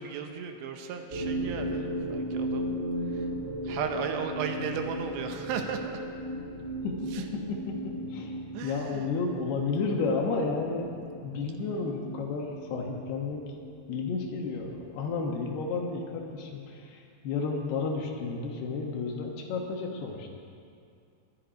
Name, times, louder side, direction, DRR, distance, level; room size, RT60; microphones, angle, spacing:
voice 1, 0.0-2.7 3.1-3.3 3.6-6.0 7.1-7.3 8.5-9.1, right 6 dB, 75° right, 5 dB, 3.0 m, -35 dB
sound 1, 1.1-16.0, right 1 dB, 30° right, 1.3 m, -37 dB
voice 2, 6.8-8.4 8.6-10.9 11.2-13.4 13.9-20.3, left 4 dB, 70° left, 1 dB, 3.0 m, -32 dB
21.5 x 11.0 x 5.1 m, 2.4 s
omnidirectional pair, 5.3 m